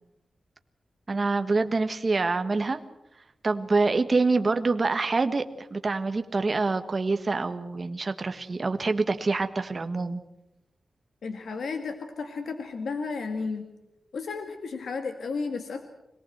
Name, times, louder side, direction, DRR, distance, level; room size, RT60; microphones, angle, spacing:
voice 1, 1.1-2.8 3.4-10.2, right 3 dB, 30° right, 8 dB, 1.4 m, -26 dB
voice 2, 11.2-13.7 14.1-15.8, left 4 dB, 80° left, 6 dB, 2.0 m, -33 dB
25.5 x 18.5 x 7.9 m, 0.89 s
wide cardioid pair, 170°, 0 cm